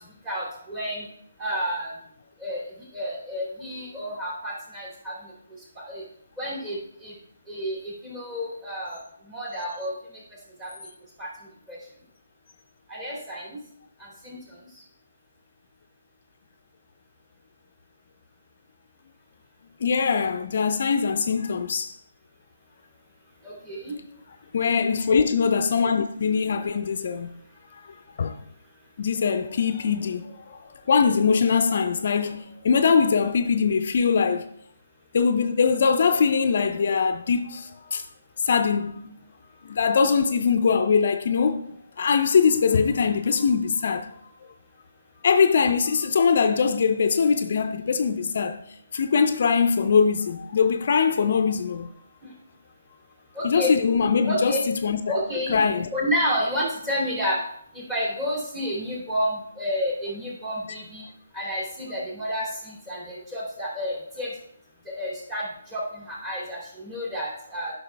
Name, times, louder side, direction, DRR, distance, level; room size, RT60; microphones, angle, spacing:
voice 1, 0.3-1.0 1.4-1.9 2.4-2.6 2.9-5.1 5.9-6.0 6.4-6.8 7.0-7.1 7.5-7.8 8.0-9.0 9.3-9.9 10.6-10.7 11.2-11.3 11.7-11.8 12.9-13.6 14.2-14.4 23.7-23.9 53.4-53.7 54.2-54.6 55.1-55.6 55.9-57.4 57.9-61.0 61.3-64.3 65.0-65.5 65.7-67.7, equal, 15° right, 2.7 m, -30 dB
voice 2, 19.8-21.9 24.5-27.4 28.2-28.4 29.0-30.6 30.9-34.5 35.1-38.0 38.5-39.1 39.6-44.1 45.2-48.6 48.9-51.9 53.4-55.0 55.5-55.9, left 5 dB, 55° left, 0.5 m, -22 dB
9.3 x 5.7 x 3.4 m
hypercardioid pair, 150°, 0 cm